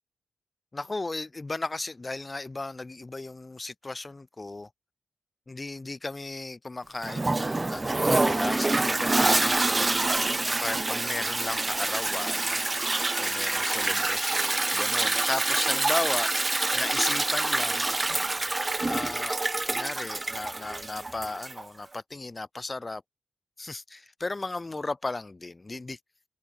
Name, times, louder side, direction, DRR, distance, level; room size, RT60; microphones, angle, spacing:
voice 1, 0.7-4.7 5.5-9.9 10.6-12.6 13.1-17.9 18.9-19.4 19.7-23.0 23.6-26.0, left 2 dB, 20° left, 1.5 m, -35 dB
Toilet flush, 7.0-21.6, right 2 dB, 20° right, 0.6 m, -26 dB
wide cardioid pair, 115°, 0 cm